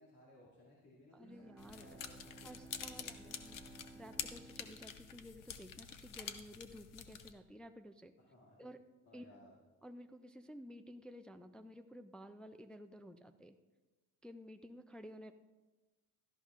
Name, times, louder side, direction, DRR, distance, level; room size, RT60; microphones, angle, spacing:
voice 1, 0.0-1.5 1.8-3.4 8.2-8.7 9.1-9.6, left 1 dB, 55° left, -6 dB, 2.5 m, -62 dB
voice 2, 1.1-2.0 2.4-3.6 3.9-8.1 8.6-8.8 9.1-9.3 9.8-13.6 14.2-15.3, equal, 5° left, 6 dB, 0.3 m, -53 dB
Bowed string instrument, 1.1-6.2, right 3 dB, 40° right, 1.0 m, -58 dB
sound 1, 1.6-7.3, left 8 dB, 75° left, 0.9 m, -48 dB
16.5 x 13.0 x 2.5 m, 1.2 s
cardioid pair, 135°, 32 cm